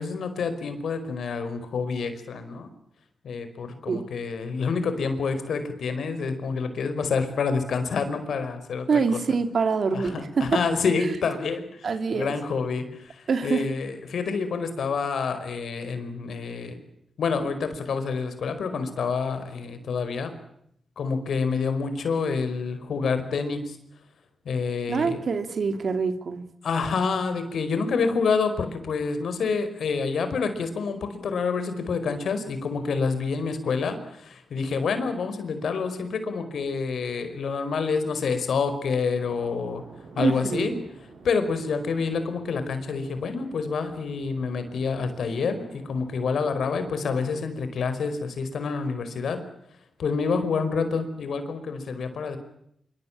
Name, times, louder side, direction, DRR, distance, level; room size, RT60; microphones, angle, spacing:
voice 1, 0.0-2.7 3.2-9.0 9.9-11.9 12.1-16.8 17.2-20.3 21.0-23.8 24.4-25.2 26.6-39.8 40.1-40.7 41.2-49.4 50.0-52.4, left 5 dB, 80° left, 9 dB, 4.9 m, -28 dB
voice 2, 8.9-10.6 11.8-12.3 13.3-13.6 24.9-26.4 40.2-40.8, right 5 dB, 60° right, 9 dB, 3.0 m, -25 dB
sound 1, 39.2-47.4, right 3 dB, 80° right, 7.2 m, -47 dB
26.5 x 24.5 x 8.9 m, 0.73 s
wide cardioid pair, 100°, 0 cm